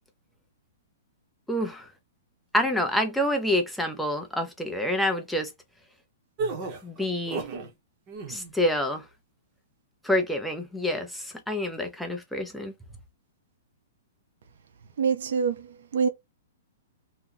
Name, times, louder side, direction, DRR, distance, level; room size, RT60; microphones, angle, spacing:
voice 1, 1.5-1.9 2.5-5.5 6.8-7.4 8.3-9.0 10.0-12.7, left 1 dB, ahead, 0.6 m, -27 dB
sound 1, 6.4-7.7 8.1-8.5, right 3 dB, 35° right, 0.9 m, -33 dB
voice 2, 15.0-16.1, right 6 dB, 70° right, 0.7 m, -26 dB
2.8 x 2.3 x 3.8 m
hypercardioid pair, 160°, 0 cm